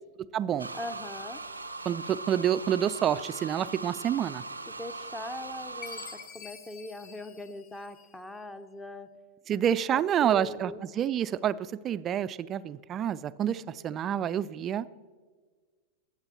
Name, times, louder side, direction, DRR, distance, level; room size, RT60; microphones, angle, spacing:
voice 1, 0.2-0.7 1.8-4.4 9.5-15.0, right 10 dB, 30° right, 16 dB, 0.4 m, -28 dB
sound 1, 0.6-6.3, right 3 dB, 85° right, 0.6 m, -40 dB
voice 2, 0.7-1.4 4.7-9.1 9.9-10.8, left 1 dB, 10° left, 11 dB, 0.7 m, -41 dB
Chime, 5.8-8.4, left 7 dB, 45° left, 1.0 m, -47 dB
21.0 x 8.1 x 4.1 m, 1.5 s
figure-of-eight pair, 90°, 0 cm